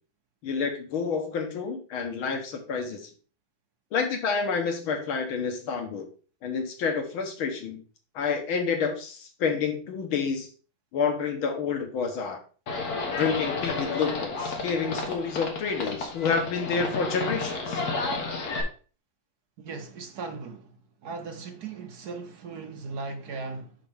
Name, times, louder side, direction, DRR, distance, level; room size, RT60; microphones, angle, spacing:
voice 1, 0.4-3.1 3.9-6.1 6.4-7.8 8.2-10.5 10.9-12.4 13.2-17.9, left 5 dB, 90° left, 2.0 m, -29 dB
Livestock farm animals working animals, 12.7-18.6, left 3 dB, 50° left, 1.6 m, -31 dB
voice 2, 19.6-20.7 21.0-23.8, right 4 dB, 65° right, 1.1 m, -38 dB
5.9 x 5.7 x 3.5 m
omnidirectional pair, 2.2 m